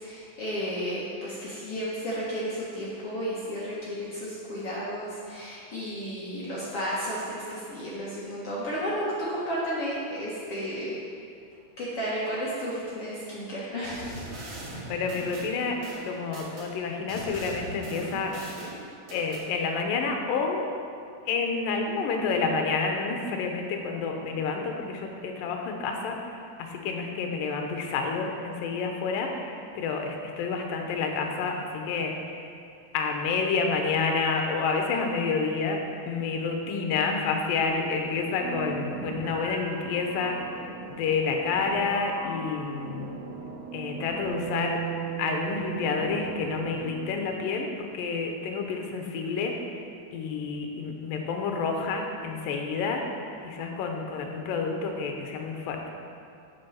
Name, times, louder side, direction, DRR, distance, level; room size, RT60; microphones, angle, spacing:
voice 1, 0.0-10.9 11.8-14.0, equal, 55° left, -7 dB, 1.7 m, -33 dB
sound 1, 13.8-16.7 17.1-19.5, right 2 dB, 50° right, 1.8 m, -40 dB
voice 2, 14.9-15.8 16.1-18.3 19.1-20.7 21.3-26.2 26.6-32.4 32.9-35.8 36.1-40.4 40.9-43.1 43.7-44.8 45.2-49.7 50.1-53.0 53.4-55.9, left 4 dB, 80° left, 2 dB, 2.5 m, -29 dB
sound 2, 37.7-47.2, right 6 dB, 80° right, 2.9 m, -38 dB
9.0 x 6.2 x 5.7 m, 2.5 s
omnidirectional pair, 4.2 m